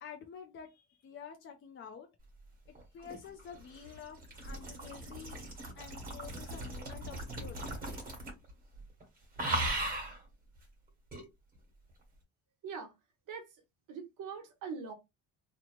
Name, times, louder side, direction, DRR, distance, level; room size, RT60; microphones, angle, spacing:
voice 1, 0.0-2.1 2.9-5.4 5.8-7.6, left 7 dB, 35° left, 0.4 m, -49 dB
sound 1, 2.7-8.5 8.7-9.0 9.4-10.2 11.1-11.2, right 1 dB, 25° right, 1.3 m, -38 dB
voice 2, 13.9-14.9, right 5 dB, 60° right, 1.0 m, -42 dB
2.9 x 2.0 x 2.9 m
cardioid pair, 155°, 35 cm